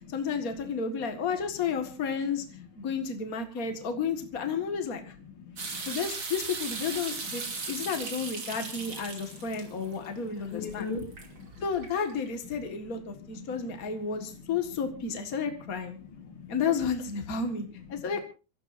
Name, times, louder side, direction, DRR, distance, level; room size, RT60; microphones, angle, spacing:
voice 1, 0.1-2.4 2.8-5.1 5.9-7.4 7.7-10.9 11.6-16.0 16.5-18.2, left 5 dB, 85° left, 0.7 m, -32 dB
voice 2, 5.4-5.8 7.5-7.6 9.2-9.3 9.8-11.5 12.5-12.6 13.4-13.6 14.5-14.6 16.0-16.6, left 4 dB, 50° left, 1.7 m, -41 dB
sound 1, 5.6-12.4, right 4 dB, 35° right, 2.9 m, -38 dB
27.0 x 14.5 x 2.6 m
omnidirectional pair, 4.6 m